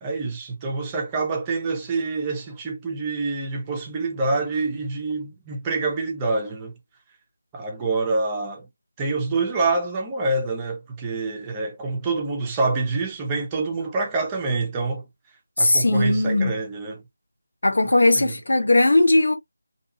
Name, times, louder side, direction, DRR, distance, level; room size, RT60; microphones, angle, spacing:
voice 1, 0.0-6.7 7.5-8.7 9.0-15.0 15.6-17.0 18.2-18.3, right 3 dB, 15° right, 0.6 m, -26 dB
voice 2, 15.6-16.5 17.6-19.3, left 2 dB, 65° left, 1.1 m, -18 dB
2.7 x 2.3 x 2.7 m
figure-of-eight pair, 165°, 0 cm